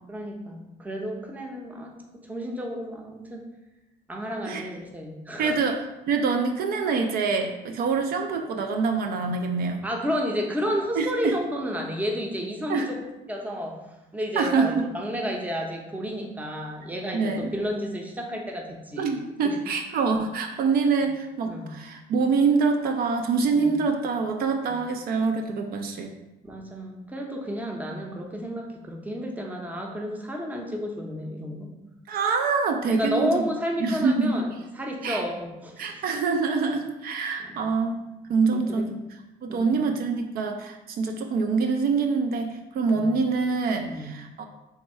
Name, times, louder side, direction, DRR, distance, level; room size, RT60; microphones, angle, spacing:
voice 1, 0.1-1.9 2.3-3.4 4.1-5.6 9.8-13.0 13.3-13.8 14.1-19.1 19.4-19.6 21.4-21.7 23.5-23.8 24.7-24.8 26.4-31.7 32.9-36.0 37.4-37.7 38.5-38.9 39.5-39.6 42.9-43.1 43.8-44.1, equal, 10° right, 1 dB, 0.6 m, -31 dB
voice 2, 5.4-5.8 6.1-9.8 10.9-11.4 12.7-12.9 14.4-14.9 17.1-17.5 19.0-26.1 32.1-33.5 33.8-34.4 35.0-35.2 35.8-38.0 38.3-38.9 39.4-44.4, right 4 dB, 65° right, 5 dB, 0.4 m, -25 dB
3.5 x 2.2 x 4.2 m, 0.98 s
cardioid pair, 110°, 17 cm